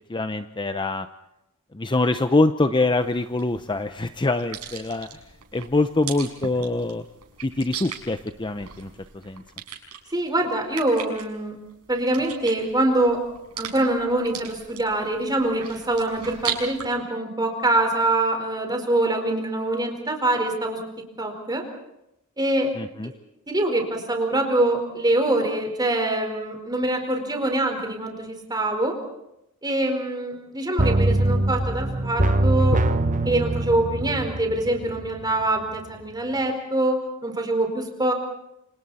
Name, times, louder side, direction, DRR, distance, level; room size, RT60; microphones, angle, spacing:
voice 1, 0.1-1.1 1.7-5.1 5.5-7.0 7.4-9.4 22.7-23.1, left 2 dB, 20° left, 10 dB, 0.7 m, -24 dB
sound 1, 2.9-16.9, right 8 dB, 90° right, 6.0 m, -39 dB
voice 2, 10.1-11.6 11.9-13.2 13.6-20.9 21.2-21.6 22.4-22.7 23.0-23.1 23.5-29.0 29.6-32.8 33.2-38.1, right 1 dB, 20° right, 4 dB, 4.6 m, -24 dB
sound 2, 30.8-35.5 35.8-35.9, right 1 dB, 35° right, 1.2 m, -23 dB
29.0 x 27.0 x 4.3 m, 0.86 s
head